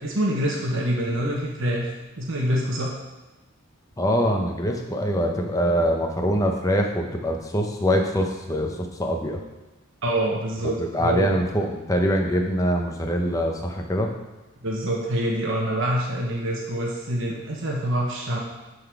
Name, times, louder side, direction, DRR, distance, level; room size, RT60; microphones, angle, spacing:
voice 1, 0.0-1.9 2.2-2.9 10.0-11.4 14.6-18.4, right 1 dB, 60° right, -3 dB, 1.2 m, -26 dB
voice 2, 4.0-9.4 10.6-14.1, equal, 15° left, 2 dB, 0.8 m, -24 dB
10.0 x 4.1 x 4.6 m, 1.1 s
head